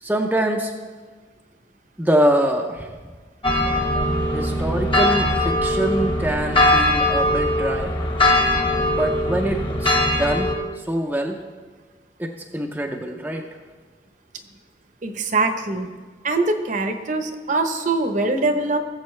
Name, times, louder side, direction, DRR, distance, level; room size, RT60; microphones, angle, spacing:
voice 1, 0.0-0.7 2.0-2.9 4.3-7.9 8.9-11.4 12.2-13.4, right 1 dB, 10° right, 1 dB, 0.5 m, -24 dB
sound 1, 3.4-10.5, left 1 dB, 25° left, 1.1 m, -20 dB
voice 2, 15.0-15.9 16.2-18.8, right 3 dB, 40° right, 7 dB, 0.8 m, -22 dB
19.0 x 7.5 x 3.2 m, 1.4 s
head